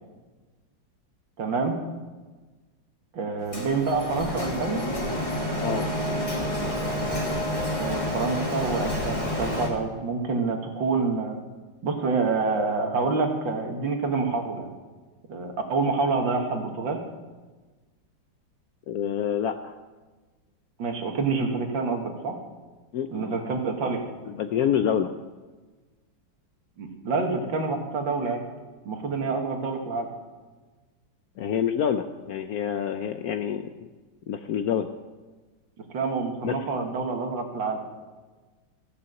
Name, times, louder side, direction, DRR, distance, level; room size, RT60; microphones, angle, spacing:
voice 1, 1.4-1.8 3.1-4.8 7.8-11.4 11.8-14.7 15.3-17.0 20.8-22.3 23.1-24.0 26.8-28.4 28.9-30.1 35.9-37.8, right 4 dB, 75° right, 3 dB, 2.2 m, -27 dB
Printer, 3.5-9.7, equal, 15° left, 2.1 m, -29 dB
voice 2, 18.9-19.7 22.9-23.4 24.3-25.1 31.4-33.6 34.3-34.9 36.4-36.6, left 8 dB, 70° left, 8 dB, 0.9 m, -27 dB
15.5 x 6.9 x 7.7 m, 1.3 s
omnidirectional pair, 2.1 m